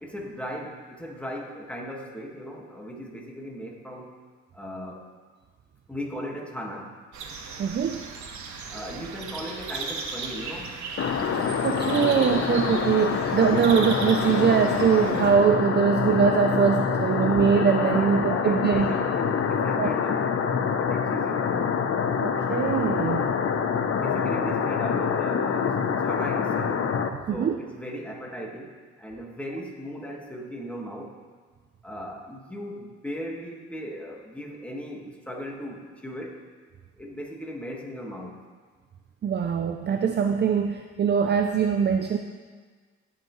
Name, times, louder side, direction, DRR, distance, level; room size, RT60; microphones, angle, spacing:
voice 1, 0.0-4.1 4.5-5.0 5.9-7.0 8.7-10.7 17.8-20.2 20.7-21.6 24.0-26.9 27.3-31.2 31.8-36.4 37.0-38.4, equal, 5° left, -1 dB, 1.6 m, -37 dB
sound 1, 7.1-15.3, right 4 dB, 70° right, 1.2 m, -37 dB
voice 2, 7.6-8.0 11.3-18.9 19.8-19.9 22.2-23.3 27.3-27.6 39.2-42.2, right 7 dB, 35° right, 6 dB, 0.5 m, -22 dB
sound 2, 11.0-27.1, left 6 dB, 45° left, 0.7 m, -26 dB
16.5 x 5.8 x 3.1 m, 1.5 s
cardioid pair, 90°, 30 cm